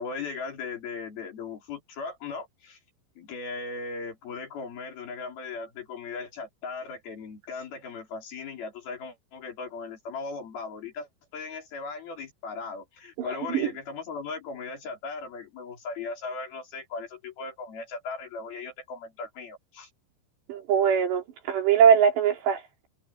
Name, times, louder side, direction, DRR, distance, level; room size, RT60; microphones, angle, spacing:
voice 1, 0.0-2.8 3.2-19.9, left 4 dB, 60° left, 6.3 m, -38 dB
voice 2, 13.2-13.7 20.5-22.9, right 7 dB, 75° right, 6.0 m, -22 dB
omnidirectional pair, 5.0 m